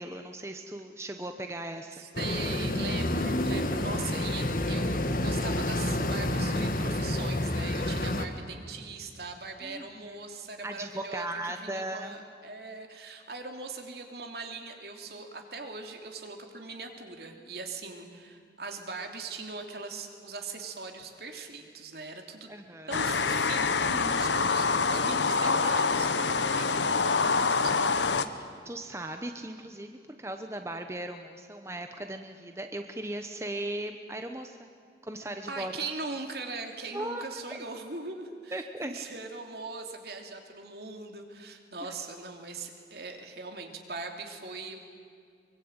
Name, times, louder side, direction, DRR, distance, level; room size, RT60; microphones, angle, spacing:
voice 1, 0.0-2.0 9.6-10.1 10.6-12.2 22.5-23.0 28.3-34.7 35.0-35.7 36.9-37.4 38.5-38.9 41.8-41.9, right 1 dB, 15° right, 6 dB, 0.9 m, -38 dB
voice 2, 1.9-11.3 11.6-22.5 22.9-28.6 35.5-44.8, right 3 dB, 60° right, 4 dB, 3.0 m, -40 dB
sound 1, 2.1-8.2, left 1 dB, 50° left, 1.6 m, -29 dB
sound 2, 22.9-28.2, left 4 dB, 85° left, 1.1 m, -26 dB
23.5 x 23.5 x 8.9 m, 2.3 s
head